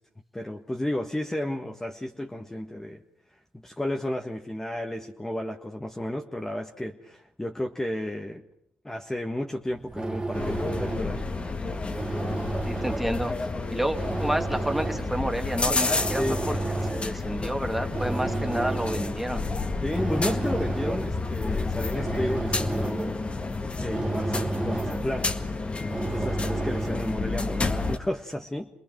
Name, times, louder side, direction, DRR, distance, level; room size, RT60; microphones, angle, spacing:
voice 1, 0.3-3.0 3.5-8.4 8.8-11.4 16.2-16.6 19.8-23.4 23.8-25.3 26.1-28.7, left 1 dB, 10° left, 2 dB, 1.6 m, -32 dB
sound 1, 9.7-27.3, right 3 dB, 20° right, 2.0 m, -33 dB
sound 2, 10.3-28.0, left 3 dB, 30° left, 1.8 m, -30 dB
voice 2, 12.7-16.6 16.9-19.4, right 1 dB, 5° right, 5 dB, 2.3 m, -30 dB
28.0 x 20.5 x 6.1 m, 0.73 s
supercardioid pair, 70°, 4 cm